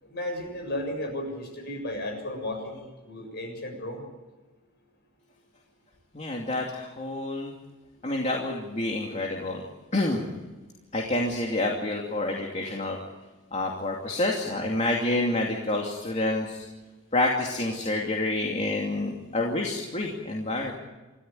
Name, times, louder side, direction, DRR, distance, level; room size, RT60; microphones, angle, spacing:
voice 1, 0.0-4.0, left 1 dB, 50° left, 4 dB, 7.1 m, -34 dB
voice 2, 6.1-7.5 8.0-9.6 9.9-10.2 10.9-13.0 13.5-16.7 17.1-20.7, left 2 dB, 30° left, -1 dB, 2.6 m, -28 dB
27.5 x 14.5 x 9.2 m, 1.2 s
head